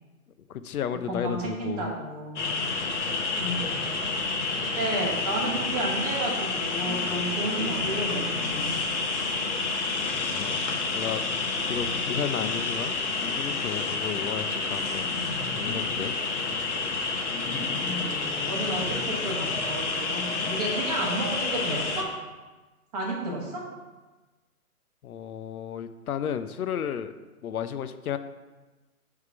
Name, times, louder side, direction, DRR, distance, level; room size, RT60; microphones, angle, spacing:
voice 1, 0.5-1.9 10.2-10.7 10.9-11.2 11.7-12.9 13.4-15.1 15.5-16.1 17.6-18.8 25.0-27.1 27.4-28.2, left 8 dB, 75° left, 11 dB, 0.6 m, -33 dB
voice 2, 1.1-2.7 3.4-4.0 4.8-8.8 17.7-22.1 22.9-23.6, right 2 dB, 25° right, -3 dB, 1.4 m, -32 dB
sound 1, 2.4-22.0, left 3 dB, 50° left, 1.2 m, -29 dB
6.5 x 3.6 x 5.9 m, 1.2 s
hypercardioid pair, 160°, 44 cm